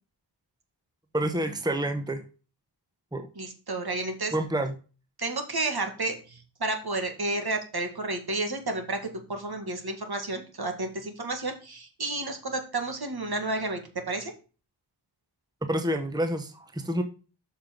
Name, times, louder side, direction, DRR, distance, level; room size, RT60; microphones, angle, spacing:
voice 1, 1.1-2.2 3.1-3.3 4.3-4.7 15.7-17.0, right 1 dB, 10° right, 7 dB, 1.1 m, -28 dB
voice 2, 3.4-4.3 5.2-9.0 9.3-13.8 14.1-14.3, right 2 dB, 60° right, 5 dB, 2.1 m, -31 dB
6.6 x 5.7 x 5.2 m, 0.35 s
cardioid pair, 45°, 43 cm